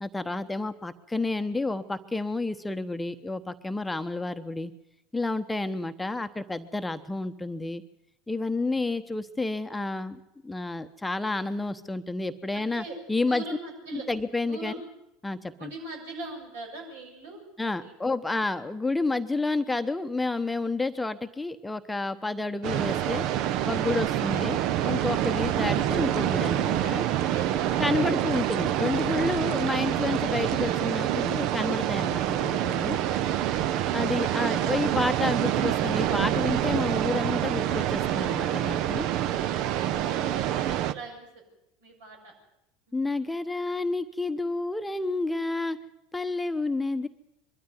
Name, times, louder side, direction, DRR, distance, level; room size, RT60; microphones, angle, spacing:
voice 1, 0.0-4.7 5.1-7.8 8.3-13.4 13.9-14.8 15.2-15.7 17.6-23.3 23.6-27.1 27.8-33.0 33.9-39.1 42.9-45.8 46.1-47.1, left 3 dB, 10° left, 9 dB, 1.0 m, -30 dB
voice 2, 12.5-13.0 13.2-14.0 14.5-14.9 15.6-17.9 27.2-28.6 39.7-41.3 41.8-42.3, right 3 dB, 70° right, 0 dB, 7.2 m, -41 dB
sound 1, 22.6-40.9, right 11 dB, 55° right, 0.8 m, -26 dB
23.0 x 13.0 x 9.5 m, 0.86 s
figure-of-eight pair, 75°, 0 cm